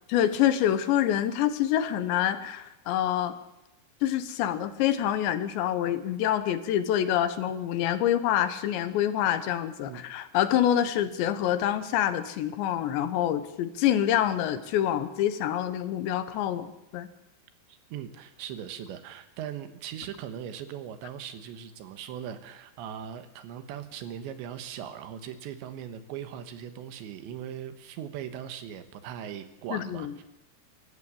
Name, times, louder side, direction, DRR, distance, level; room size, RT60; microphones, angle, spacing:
voice 1, 0.1-3.3 4.0-17.1 29.7-30.1, left 11 dB, 75° left, 11 dB, 3.2 m, -26 dB
voice 2, 17.7-30.2, right 9 dB, 75° right, 10 dB, 3.5 m, -39 dB
24.5 x 14.0 x 8.5 m, 0.91 s
omnidirectional pair, 5.4 m